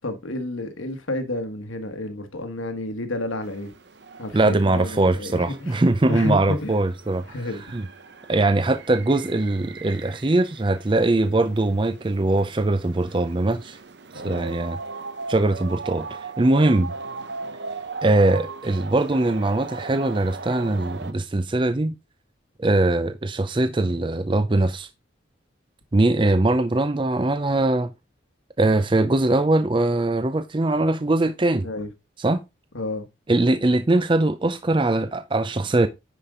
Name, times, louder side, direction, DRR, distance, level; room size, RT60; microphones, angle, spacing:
voice 1, 0.0-3.7 4.2-5.8 6.1-6.7 7.3-7.6 14.1-14.5 31.6-31.9 32.7-33.1, left 2 dB, 85° left, 1.4 m, -30 dB
sound 1, 3.4-21.1, right 4 dB, 60° right, 0.8 m, -39 dB
voice 2, 4.3-7.2 7.7-7.8 8.3-13.8 14.2-14.8 15.3-16.9 18.0-21.9 22.6-24.9 25.9-27.9 28.6-31.7 32.2-32.4 33.3-35.9, right 2 dB, 25° right, 0.5 m, -21 dB
9.9 x 5.2 x 3.7 m
head